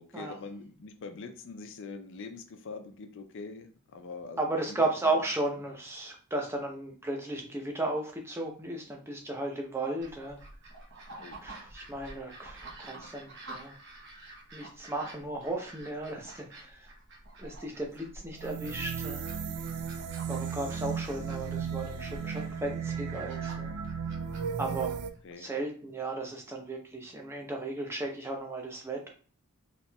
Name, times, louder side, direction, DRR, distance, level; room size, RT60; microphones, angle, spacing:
voice 1, 0.0-5.2 11.2-11.4 25.2-25.5, left 4 dB, 55° left, 8 dB, 0.4 m, -44 dB
voice 2, 4.4-10.4 11.4-13.8 14.5-16.9 17.4-19.2 20.3-23.7 24.6-24.9 25.4-29.1, right 2 dB, 10° right, 1 dB, 0.6 m, -35 dB
sound 1, 10.0-25.2, right 2 dB, 50° right, 0.9 m, -49 dB
sound 2, 18.4-25.1, right 6 dB, 80° right, 0.4 m, -35 dB
4.1 x 2.9 x 2.2 m, 0.42 s
head